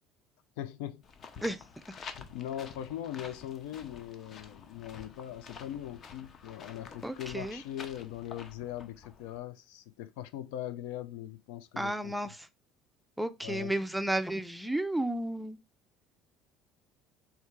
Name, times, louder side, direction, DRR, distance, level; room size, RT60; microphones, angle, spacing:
voice 1, 0.6-1.0 1.4-1.5 2.2-12.2 13.4-13.7, left 11 dB, 90° left, 0.4 m, -40 dB
sound 1, 1.0-9.4, left 5 dB, 40° left, 0.7 m, -49 dB
voice 2, 7.0-7.6 11.8-12.5 13.2-15.6, right 1 dB, 5° right, 0.4 m, -32 dB
3.3 x 2.8 x 4.5 m
cardioid pair, 120°, 0 cm